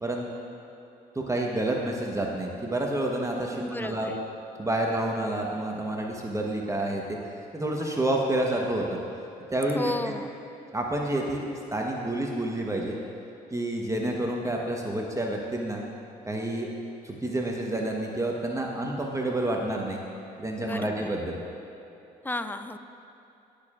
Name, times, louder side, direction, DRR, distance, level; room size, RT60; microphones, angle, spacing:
voice 1, 1.1-4.1 4.6-7.2 7.5-9.0 9.5-9.9 10.7-11.4 11.7-13.0 13.5-15.8 16.3-16.7 17.0-20.0 20.4-21.4, right 1 dB, 15° right, -1 dB, 1.2 m, -29 dB
voice 2, 3.6-4.1 9.7-10.3 20.6-21.1 22.2-22.8, left 2 dB, 10° left, 9 dB, 0.6 m, -33 dB
20.0 x 6.7 x 2.5 m, 2.9 s
hypercardioid pair, 50°, 20 cm